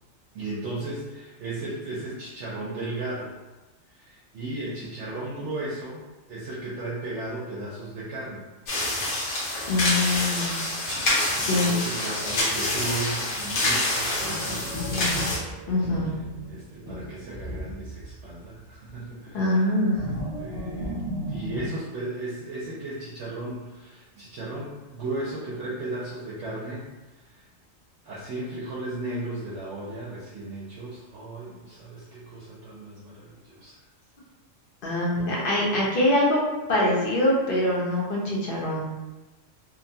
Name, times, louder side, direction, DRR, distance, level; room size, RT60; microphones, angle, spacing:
voice 1, 0.3-3.3 3.9-8.5 11.5-15.3 16.5-19.7 20.4-21.0 21.3-26.8 27.1-27.5 28.0-33.8, right 2 dB, 70° right, -7 dB, 0.9 m, -35 dB
sound 1, 8.7-15.4, left 1 dB, 90° left, 1.2 m, -27 dB
voice 2, 9.7-10.6 11.3-11.8 15.7-16.1 19.3-20.0 34.8-36.4 36.7-38.8, left 1 dB, 50° left, -4 dB, 0.8 m, -24 dB
sound 2, 14.1-18.4 18.7-18.9 19.9-21.7, equal, 5° right, 0.5 m, -34 dB
2.8 x 2.2 x 2.6 m, 1.1 s
omnidirectional pair, 1.3 m